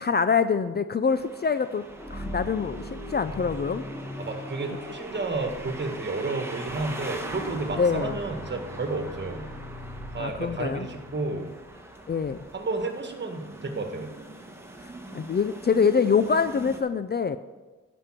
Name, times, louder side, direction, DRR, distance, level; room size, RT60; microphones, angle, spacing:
voice 1, 0.0-3.8 7.8-8.2 10.2-10.9 12.1-12.4 15.1-17.4, left 5 dB, 35° left, 12 dB, 0.5 m, -25 dB
sound 1, 1.1-16.8, right 2 dB, 10° right, 1.5 m, -42 dB
sound 2, 1.9-11.7, equal, 10° left, 2.9 m, -40 dB
voice 2, 4.2-9.5 10.1-11.5 12.5-14.1, right 3 dB, 40° right, 5 dB, 1.6 m, -31 dB
11.0 x 5.4 x 7.3 m, 1.2 s
cardioid pair, 80°, 29 cm